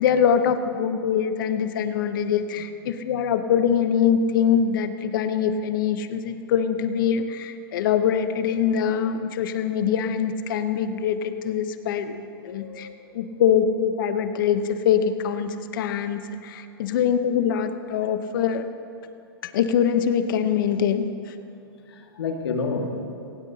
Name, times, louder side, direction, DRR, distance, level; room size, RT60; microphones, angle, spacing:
voice 1, 0.0-12.9 13.1-18.7 19.4-21.1, left 8 dB, 60° left, 9 dB, 0.9 m, -23 dB
voice 2, 12.4-13.4 21.9-22.9, left 4 dB, 90° left, 2 dB, 2.0 m, -31 dB
18.5 x 17.0 x 2.9 m, 2.6 s
hypercardioid pair, 135°, 13 cm